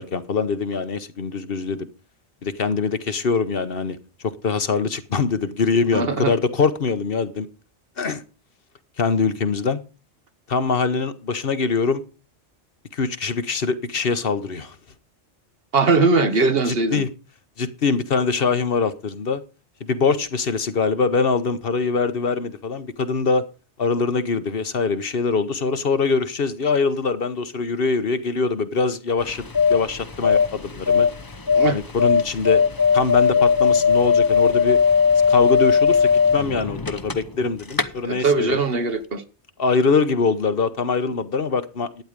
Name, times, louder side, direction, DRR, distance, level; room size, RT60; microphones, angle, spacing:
voice 1, 0.0-1.8 2.4-4.0 4.2-7.5 8.0-8.2 9.0-9.8 10.5-12.0 12.9-14.7 16.7-17.1 17.6-19.4 19.8-23.4 23.8-29.4 29.7-31.1 31.7-32.6 32.9-34.8 35.3-38.6 39.6-42.0, left 4 dB, 55° left, 1.1 m, -23 dB
voice 2, 5.9-6.3 15.7-17.0 31.5-31.8 38.0-39.2, right 3 dB, 55° right, 1.4 m, -20 dB
sound 1, 29.2-37.4 37.7-37.8, left 6 dB, 20° left, 0.7 m, -18 dB
12.0 x 9.6 x 5.1 m
omnidirectional pair, 1.2 m